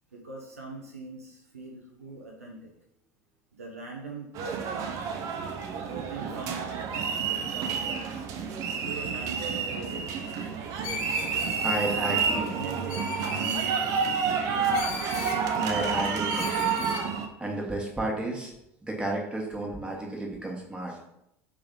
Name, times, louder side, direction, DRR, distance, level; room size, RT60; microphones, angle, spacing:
voice 1, 0.1-2.7 3.6-4.9 5.7-8.3 8.8-10.3 11.6-14.8, right 3 dB, 80° right, -1 dB, 0.7 m, -42 dB
sound 1, 4.4-17.3, right 6 dB, 45° right, 0.5 m, -29 dB
Screech, 10.8-11.8 12.9-13.7 14.7-15.4 16.3-17.1, left 5 dB, 50° left, 0.7 m, -38 dB
voice 2, 11.6-12.5 15.6-17.0 17.4-18.5 18.8-21.0, right 1 dB, 10° right, -1 dB, 1.2 m, -32 dB
3.4 x 3.3 x 3.7 m, 0.80 s
figure-of-eight pair, 70°, 8 cm